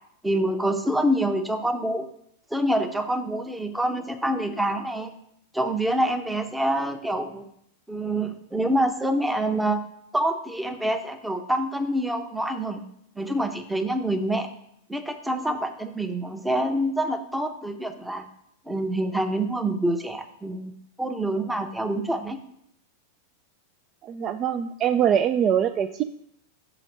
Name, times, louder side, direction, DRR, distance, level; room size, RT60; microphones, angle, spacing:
voice 1, 0.2-2.1 2.5-5.1 5.5-7.4 7.9-9.8 10.1-12.8 13.2-14.5 14.9-18.3 18.7-20.7 21.0-22.4, right 1 dB, 5° right, 7 dB, 0.7 m, -26 dB
voice 2, 24.0-26.0, right 9 dB, 30° right, 8 dB, 0.3 m, -23 dB
5.8 x 4.9 x 6.1 m, 0.72 s
figure-of-eight pair, 90°, 0 cm